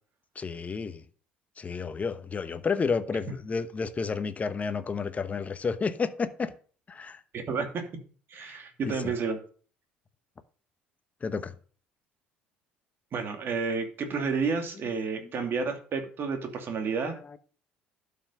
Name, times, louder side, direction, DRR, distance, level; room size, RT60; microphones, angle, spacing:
voice 1, 0.3-1.0 1.6-6.5 6.9-7.2 8.4-9.1 11.2-11.5 15.1-15.3 17.1-17.4, left 5 dB, 30° left, 1.0 m, -31 dB
voice 2, 7.3-7.8 8.3-9.4 13.1-17.1, right 5 dB, 45° right, 2.5 m, -30 dB
11.5 x 5.7 x 5.4 m
hypercardioid pair, 60°, 5 cm